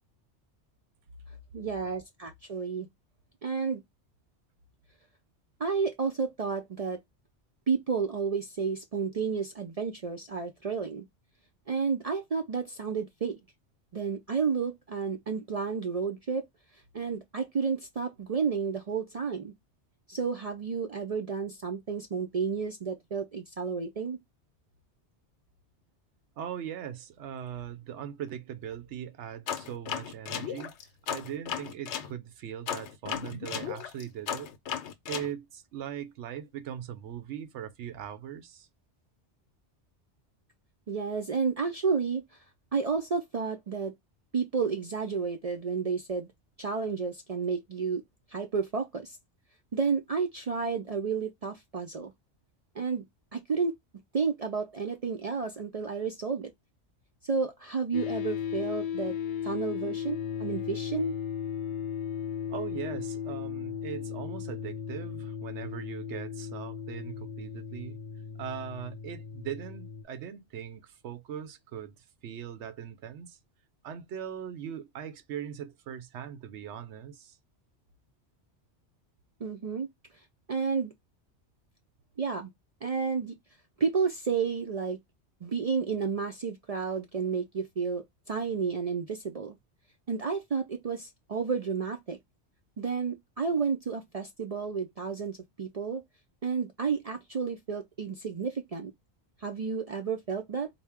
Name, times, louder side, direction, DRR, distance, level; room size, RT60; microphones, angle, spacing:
voice 1, 1.5-2.9 3.4-3.8 5.6-7.0 7.7-11.1 11.7-13.4 13.9-16.4 16.9-19.5 20.1-24.2 40.9-42.2 42.7-43.9 44.3-46.3 46.6-48.0 48.3-49.2 49.7-52.1 52.8-53.0 53.3-53.7 54.1-56.5 57.2-59.1 59.4-61.1 79.4-79.9 80.5-80.9 82.2-82.5 82.8-83.3 83.8-85.0 85.4-89.6 90.1-92.2 92.8-96.0 96.4-98.9 99.4-100.7, right 5 dB, 55° right, 0.4 m, -31 dB
voice 2, 26.4-30.7 31.1-34.5 35.1-38.7 62.5-68.0 68.4-73.4 73.8-77.4, right 9 dB, 80° right, 0.9 m, -40 dB
sound 1, 29.5-32.1 32.7-35.3, left 9 dB, 80° left, 0.9 m, -35 dB
sound 2, 57.9-70.0, left 8 dB, 55° left, 0.7 m, -36 dB
4.2 x 2.1 x 3.4 m
omnidirectional pair, 1.2 m